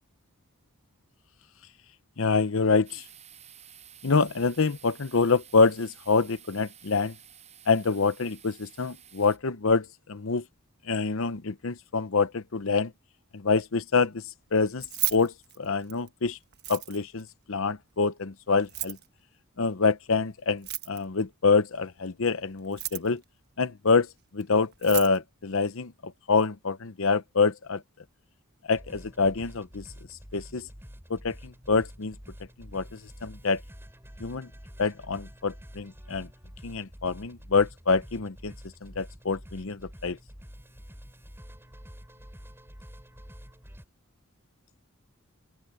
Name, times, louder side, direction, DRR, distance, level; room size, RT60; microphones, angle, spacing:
voice 1, 2.2-3.0 4.0-7.1 7.7-10.4 10.9-12.9 13.3-14.2 14.5-14.9 15.1-16.4 16.7-19.0 19.6-23.2 23.6-24.1 24.3-27.8 28.7-29.8 30.3-30.7 31.1-32.1 32.7-33.6 34.2-34.5 34.8-36.3 36.6-38.5 38.8-40.2, left 4 dB, 65° left, 0.8 m, -26 dB
sound 1, 2.8-9.4, right 10 dB, 30° right, 7.1 m, -52 dB
Keys jangling, 14.7-16.1 16.5-17.2 18.6-19.1 20.5-21.2 22.6-23.2 24.4-24.5 24.7-25.2, right 15 dB, 45° right, 1.3 m, -33 dB
sound 2, 28.8-43.8, equal, 10° right, 5.9 m, -48 dB
open air
head